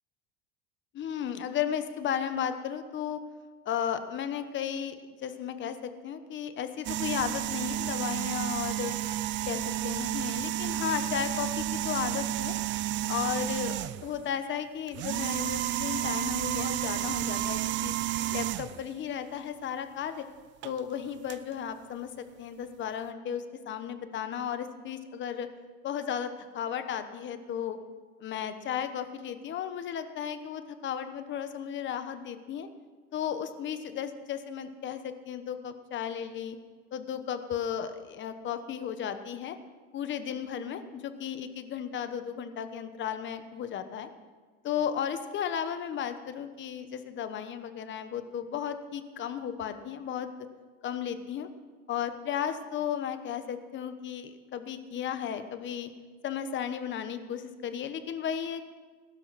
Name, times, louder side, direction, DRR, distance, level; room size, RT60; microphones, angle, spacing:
voice 1, 0.9-3.2 3.6-5.0 5.2-8.9 9.4-12.5 13.1-17.9 18.3-20.2 20.6-25.5 25.8-27.8 28.2-32.7 33.1-36.6 36.9-39.6 39.9-44.1 44.6-50.3 50.8-51.5 51.9-55.9 56.2-58.6, left 8 dB, 35° left, 9 dB, 1.1 m, -34 dB
sound 1, 6.8-14.2 14.9-18.8 20.6-20.8 21.3-21.4, right 13 dB, 40° right, 0.5 m, -31 dB
20.5 x 12.0 x 4.2 m, 1.4 s
cardioid pair, 140°, 31 cm